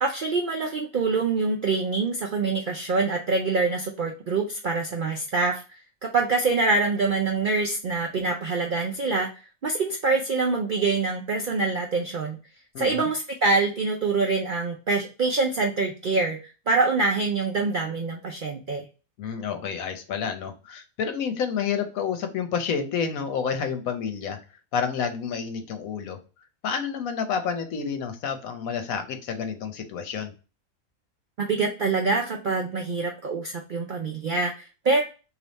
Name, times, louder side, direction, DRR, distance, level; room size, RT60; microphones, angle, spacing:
voice 1, 0.0-5.6 6.0-9.3 9.6-12.4 12.8-18.8 31.4-35.0, right 3 dB, 65° right, 1 dB, 0.5 m, -25 dB
voice 2, 19.2-24.4 24.7-26.2 26.6-30.3, left 6 dB, 80° left, 7 dB, 1.1 m, -29 dB
3.4 x 2.7 x 3.9 m, 0.33 s
omnidirectional pair, 1.5 m